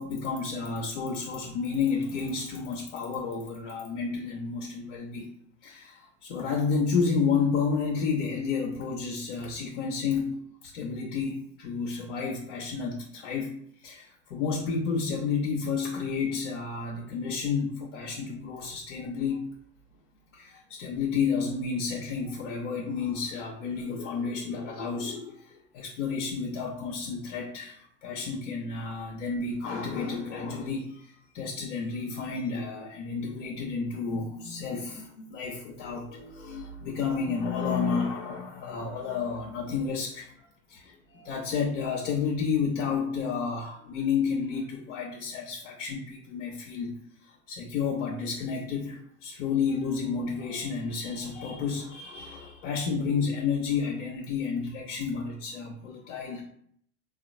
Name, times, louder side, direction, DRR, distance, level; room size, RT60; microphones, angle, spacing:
voice 1, 0.0-5.3 5.6-19.6 20.3-46.9 47.3-56.4, left 5 dB, 80° left, -1 dB, 0.6 m, -31 dB
3.6 x 2.3 x 2.6 m, 0.64 s
hypercardioid pair, 80°, 36 cm